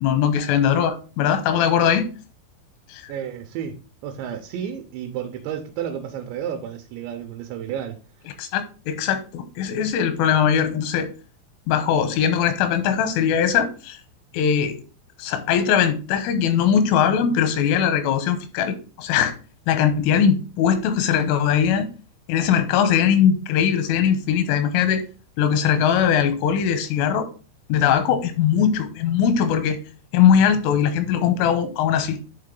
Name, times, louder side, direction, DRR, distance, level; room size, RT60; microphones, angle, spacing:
voice 1, 0.0-2.1 2.9-3.1 8.4-11.1 11.7-14.0 14.3-14.8 15.2-19.3 19.7-21.9 22.3-25.0 25.4-27.3 27.7-29.8 30.1-32.3, left 8 dB, 85° left, 3.3 m, -20 dB
voice 2, 3.1-3.8 4.0-8.0, right 9 dB, 80° right, 2.7 m, -31 dB
10.5 x 3.6 x 3.7 m
omnidirectional pair, 5.7 m